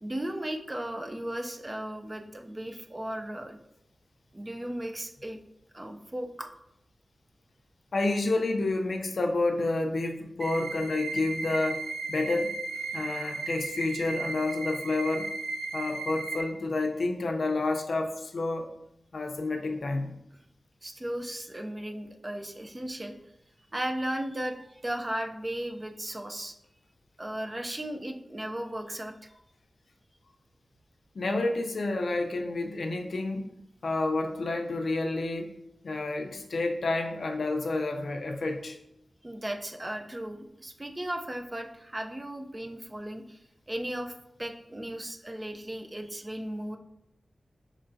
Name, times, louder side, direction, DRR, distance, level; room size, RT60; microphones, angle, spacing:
voice 1, 0.0-3.6 4.3-5.4 5.7-6.5 20.8-23.2 23.7-26.5 27.2-29.3 39.2-43.4 43.7-44.1 44.4-46.8, right 1 dB, 20° right, 5 dB, 0.4 m, -36 dB
voice 2, 7.9-11.8 12.1-12.5 12.9-15.3 15.7-18.7 19.1-20.2 31.1-33.5 33.8-35.6 35.8-38.8, left 2 dB, 70° left, 3 dB, 0.5 m, -29 dB
sound 1, 10.4-16.4, right 3 dB, 80° right, 0.5 m, -35 dB
5.5 x 3.1 x 2.6 m, 0.82 s
wide cardioid pair, 100°, 0 cm